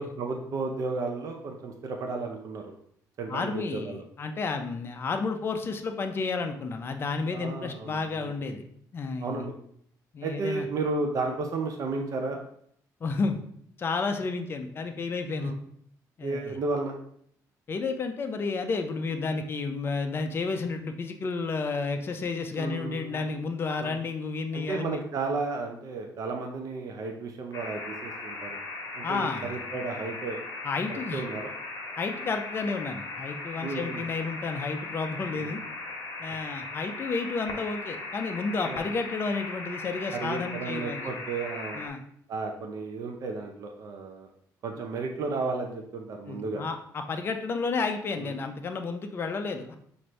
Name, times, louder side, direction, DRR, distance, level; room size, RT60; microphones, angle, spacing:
voice 1, 0.0-2.7 3.2-4.0 7.3-8.3 9.2-9.5 10.2-12.4 15.4-15.5 16.2-17.0 22.6-23.2 23.8-24.0 24.5-28.6 28.9-30.4 30.9-31.5 33.6-34.0 35.4-35.5 38.6-38.8 40.1-41.8 42.3-44.3 44.6-46.6 48.2-48.3, right 3 dB, 55° right, 2 dB, 0.6 m, -33 dB
voice 2, 3.3-8.6 8.9-9.4 10.1-10.7 13.0-13.4 13.8-15.5 16.2-16.5 17.7-25.0 29.0-29.6 30.6-31.2 32.0-35.6 36.2-41.1 41.7-42.0 46.3-49.7, left 4 dB, 35° left, 5 dB, 0.5 m, -31 dB
sound 1, 27.5-41.9, left 3 dB, 50° left, 1.2 m, -38 dB
6.0 x 2.6 x 3.2 m, 0.67 s
cardioid pair, 130°, 7 cm